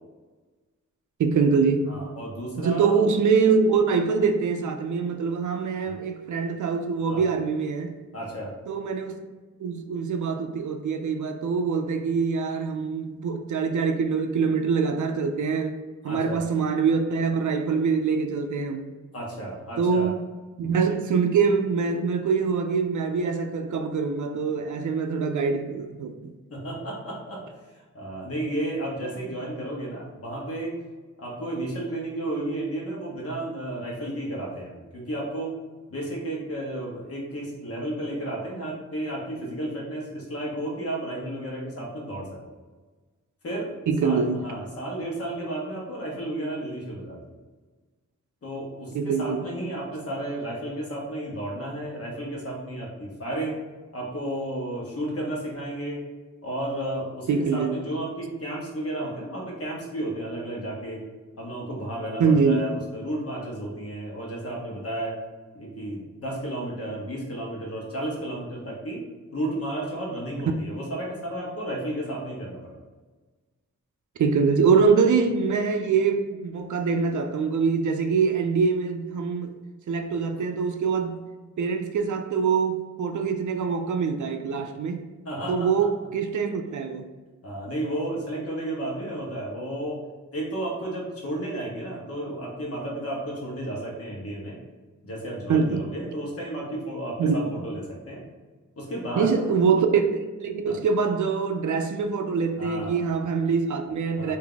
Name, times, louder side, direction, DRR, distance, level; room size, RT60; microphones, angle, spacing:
voice 1, 1.2-1.9 2.6-8.0 8.7-9.2 9.6-18.9 19.8-20.2 20.6-26.3 43.9-44.4 48.9-49.5 57.3-57.8 62.2-62.7 74.2-79.5 79.9-81.3 81.6-85.0 85.5-87.1 95.5-95.9 97.2-97.3 99.2-104.4, right 5 dB, 75° right, 6 dB, 0.5 m, -24 dB
voice 2, 1.9-3.0 5.8-5.9 7.1-7.3 8.1-8.5 16.0-16.4 19.1-20.1 26.5-27.4 27.7-30.8 31.2-35.6 35.9-42.4 43.4-43.7 44.0-47.3 48.4-53.6 53.9-56.0 56.4-61.0 61.4-65.1 65.5-69.0 69.3-72.8 80.3-80.4 85.2-85.7 87.4-90.0 90.3-94.6 95.0-98.2 98.8-99.4 100.7-100.8 102.6-103.2 104.2-104.4, right 1 dB, 50° left, -2 dB, 1.1 m, -32 dB
3.5 x 2.7 x 3.8 m, 1.3 s
wide cardioid pair, 165°, 30 cm